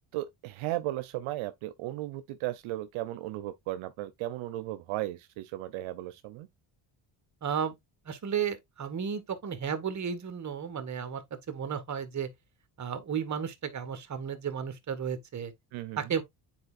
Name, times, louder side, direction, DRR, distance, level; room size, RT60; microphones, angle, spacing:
voice 1, 0.1-6.5 15.7-16.2, right 15 dB, 80° right, 0.7 m, -35 dB
voice 2, 7.4-7.7 8.0-12.3 12.8-15.5 16.0-16.2, right 7 dB, 35° right, 1.4 m, -33 dB
9.5 x 4.1 x 2.5 m
cardioid pair, 100°, 48 cm